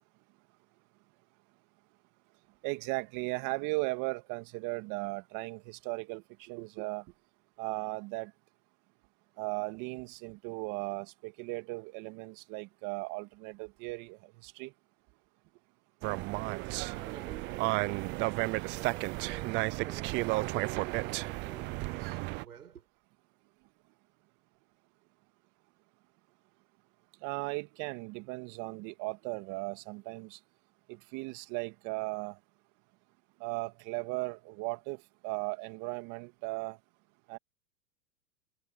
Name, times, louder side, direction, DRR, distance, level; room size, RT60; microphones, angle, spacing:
voice 1, 2.6-7.0 7.6-8.3 9.4-14.7 27.2-30.4 30.9-32.4 33.4-36.8 37.3-37.4, right 25 dB, 45° right, 2.1 m, -37 dB
sound 1, 16.0-22.4, right 24 dB, 25° right, 0.4 m, -33 dB
voice 2, 16.2-22.9, right 8 dB, 90° right, 6.3 m, -51 dB
hypercardioid pair, 115°, 43 cm